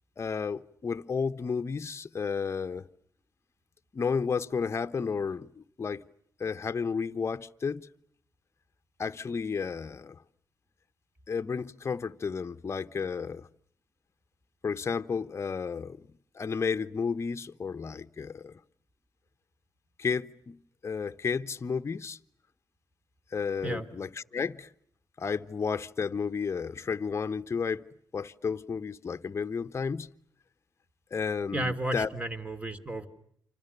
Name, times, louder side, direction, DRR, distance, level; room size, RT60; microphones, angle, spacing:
voice 1, 0.2-2.9 3.9-6.0 6.4-7.9 9.0-10.2 11.3-13.5 14.6-16.1 16.3-18.6 20.0-22.2 23.3-24.7 25.2-30.1 31.1-32.1, left 5 dB, 40° left, 1.0 m, -32 dB
voice 2, 31.5-33.1, right 2 dB, 20° right, 3.1 m, -33 dB
28.5 x 26.5 x 6.9 m
supercardioid pair, 60°, 7 cm